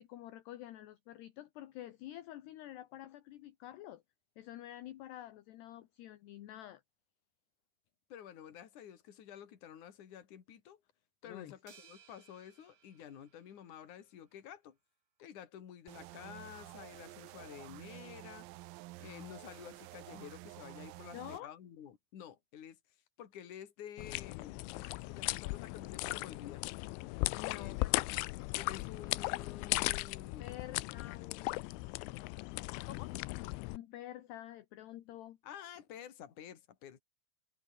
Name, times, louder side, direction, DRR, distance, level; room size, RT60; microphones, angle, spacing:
voice 1, 0.0-4.0 4.4-6.8 11.3-11.5 21.1-21.5 27.3-27.9 30.4-32.0 33.7-35.4, left 13 dB, 65° left, 3.0 m, -48 dB
voice 2, 8.1-10.8 11.2-14.8 15.2-18.5 19.0-22.8 23.2-26.6 27.4-27.9 28.5-30.6 32.9-33.1 35.4-37.0, left 9 dB, 45° left, 3.4 m, -51 dB
sound 1, 11.7-14.2, right 8 dB, 65° right, 5.7 m, -63 dB
sound 2, 15.9-21.4, right 19 dB, 90° right, 3.7 m, -51 dB
sound 3, 24.0-33.8, left 22 dB, 85° left, 2.8 m, -37 dB
omnidirectional pair, 5.9 m